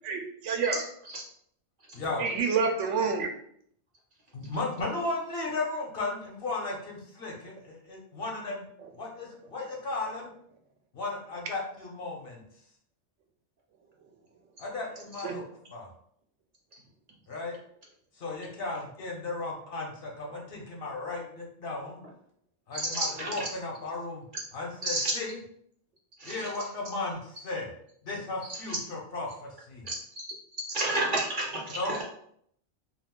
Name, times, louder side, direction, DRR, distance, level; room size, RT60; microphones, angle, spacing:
voice 1, 0.0-0.8 2.2-3.3 15.2-15.4, right 5 dB, 80° right, 4 dB, 0.9 m, -28 dB
voice 2, 1.9-2.2 4.3-8.7 9.0-10.3 10.9-12.4 14.6-15.4 15.7-15.9 17.3-17.6 18.2-22.0 22.7-24.3 24.5-25.4 26.2-27.7 28.0-29.8 31.7-32.0, left 3 dB, 60° left, -1 dB, 0.9 m, -35 dB
voice 3, 22.7-23.5 24.8-25.1 26.2-26.5 28.5-28.8 29.8-30.2 30.7-32.0, right 2 dB, 50° right, -2 dB, 0.8 m, -31 dB
2.4 x 2.4 x 3.5 m, 0.67 s
omnidirectional pair, 1.2 m